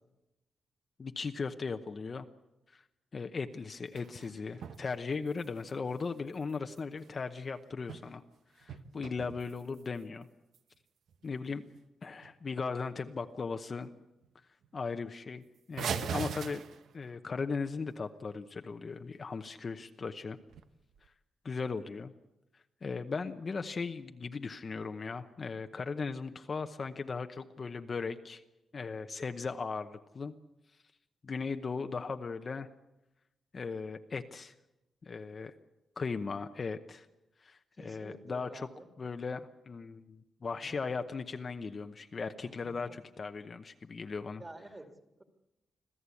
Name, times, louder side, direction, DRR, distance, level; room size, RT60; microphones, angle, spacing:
voice 1, 1.0-2.3 2.7-2.8 3.1-8.2 8.6-10.3 11.2-11.7 12.0-13.9 14.7-15.4 15.7-16.6 16.9-20.4 21.4-22.1 22.8-28.4 28.7-30.3 31.2-32.7 33.5-34.5 35.0-35.5 36.0-37.1 37.4-38.7 39.0-44.4, left 4 dB, 35° left, 7 dB, 0.9 m, -37 dB
sound 1, 3.5-4.9 5.1-7.1 7.7-8.3 8.6-10.0 10.5-10.6 11.1-11.3 11.7-11.8 12.1-12.6 13.0-13.4 13.8-13.9 14.2-14.3 14.6-14.7 15.8-17.2 20.4-21.1, right 7 dB, 80° right, 1.1 m, -42 dB
voice 2, 37.8-38.9 40.5-40.8 42.4-43.0 44.4-45.2, right 1 dB, 20° right, 6 dB, 2.4 m, -50 dB
26.0 x 15.5 x 8.4 m, 0.95 s
wide cardioid pair, 140°, 0 cm